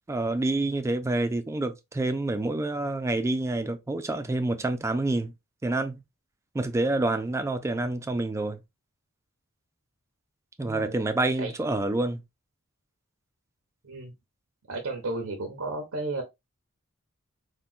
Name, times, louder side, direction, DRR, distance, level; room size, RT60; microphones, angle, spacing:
voice 1, 0.1-5.3 5.6-6.0 6.5-8.6 10.6-12.2, right 2 dB, 15° right, 0.3 m, -27 dB
voice 2, 10.6-11.0 11.4-11.5 13.8-14.1 14.7-16.2, right 2 dB, 85° right, 0.7 m, -33 dB
3.6 x 2.2 x 2.3 m
head